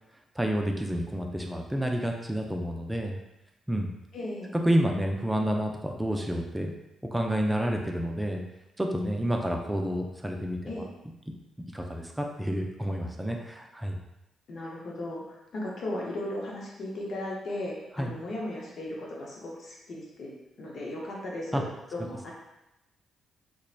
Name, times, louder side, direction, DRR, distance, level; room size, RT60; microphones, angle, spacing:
voice 1, 0.4-3.2 3.7-3.9 4.5-6.7 7.1-8.4 8.8-10.7 11.7-14.0 18.0-18.1 21.5-21.6, equal, 10° right, 2 dB, 0.4 m, -29 dB
voice 2, 4.1-4.5 10.7-10.9 14.5-20.3 20.6-22.3, left 1 dB, 60° left, -3 dB, 0.7 m, -36 dB
2.9 x 2.2 x 2.4 m, 0.92 s
hypercardioid pair, 45°, 0 cm